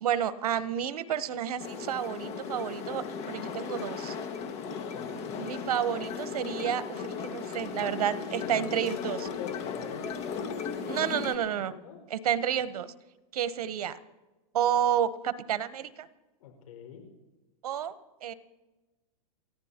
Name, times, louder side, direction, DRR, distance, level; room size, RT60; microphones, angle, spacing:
voice 1, 0.0-4.2 5.4-9.3 10.9-11.7 12.1-12.9 13.3-14.0 14.5-16.1 17.6-17.9 18.2-18.3, right 9 dB, 85° right, 14 dB, 1.0 m, -30 dB
sound 1, 1.6-11.4, left 6 dB, 35° left, 1.7 m, -36 dB
voice 2, 8.4-10.1 11.5-12.0 16.4-17.0, left 8 dB, 70° left, 4 dB, 5.2 m, -45 dB
29.0 x 15.0 x 2.9 m, 1.2 s
supercardioid pair, 145°, 19 cm